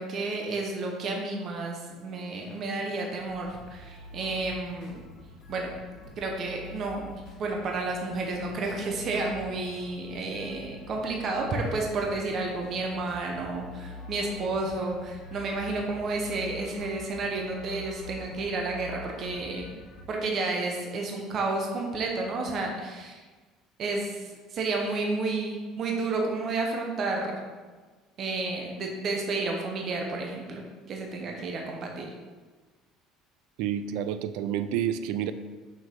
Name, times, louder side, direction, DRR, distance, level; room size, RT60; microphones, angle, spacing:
voice 1, 0.0-5.0 5.5-5.7 6.2-19.8 20.1-23.2 23.8-27.4 28.2-32.1, right 3 dB, 40° right, 1 dB, 0.9 m, -31 dB
sound 1, 1.9-20.1, left 2 dB, 50° left, 1.6 m, -46 dB
voice 2, 33.6-35.3, right 10 dB, 75° right, 11 dB, 0.3 m, -29 dB
6.0 x 5.5 x 3.7 m, 1.3 s
cardioid pair, 150°, 0 cm